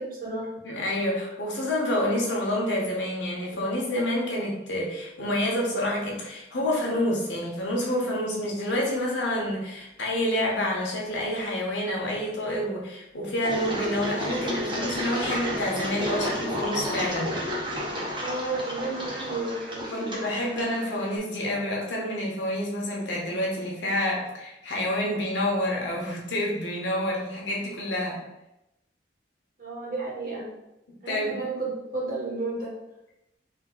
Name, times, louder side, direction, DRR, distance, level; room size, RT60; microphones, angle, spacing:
voice 1, 0.0-0.5 3.5-3.6 18.2-20.0 29.6-30.5 31.0-32.7, right 3 dB, 50° right, -5 dB, 1.2 m, -32 dB
voice 2, 0.6-17.4 19.9-28.2 31.1-31.4, left 1 dB, 85° left, -2 dB, 1.1 m, -28 dB
Engine, 13.4-21.2, equal, 25° right, 0.9 m, -32 dB
3.7 x 2.6 x 3.8 m, 0.90 s
head